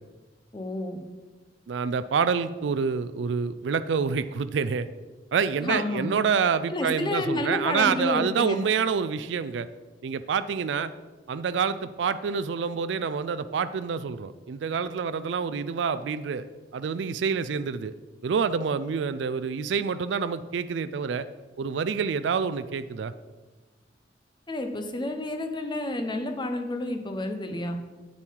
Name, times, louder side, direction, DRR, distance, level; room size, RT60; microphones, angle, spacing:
voice 1, 0.5-1.0 5.6-6.1 6.7-8.6 24.5-27.8, left 1 dB, 25° left, 5 dB, 0.8 m, -30 dB
voice 2, 1.7-4.9 5.3-9.7 10.0-10.9 11.3-16.4 16.7-17.9 18.2-21.3 21.6-23.1, right 6 dB, 70° right, 12 dB, 0.4 m, -27 dB
8.0 x 7.1 x 4.6 m, 1.2 s
head